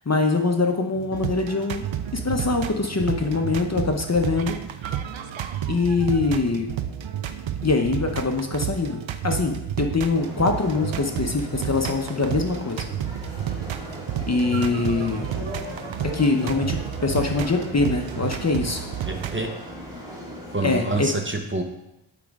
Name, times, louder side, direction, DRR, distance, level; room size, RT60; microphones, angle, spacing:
voice 1, 0.1-1.8 2.1-4.6 5.7-6.7 7.6-12.9 14.3-15.4 16.1-18.8 20.6-21.1, left 3 dB, 35° left, 4 dB, 0.7 m, -23 dB
sound 1, 0.9-19.4, right 10 dB, 70° right, 0.6 m, -31 dB
sound 2, 10.1-21.0, equal, 5° right, 2.0 m, -38 dB
voice 2, 19.1-19.5 20.5-21.6, right 2 dB, 25° right, 4 dB, 0.8 m, -27 dB
8.3 x 5.0 x 3.5 m, 0.89 s
wide cardioid pair, 65°, 49 cm